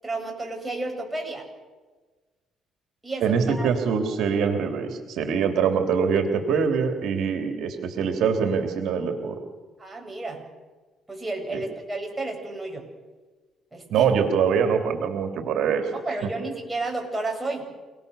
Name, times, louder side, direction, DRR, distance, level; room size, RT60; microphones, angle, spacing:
voice 1, 0.0-1.5 3.0-3.7 9.8-10.4 11.1-12.8 13.7-14.0 16.0-17.6, right 2 dB, 10° right, 1 dB, 8.0 m, -31 dB
voice 2, 3.2-9.4 11.5-11.6 13.9-15.9 16.2-16.3, right 6 dB, 70° right, 5 dB, 2.9 m, -24 dB
29.5 x 19.5 x 6.9 m, 1.3 s
cardioid pair, 85°, 0 cm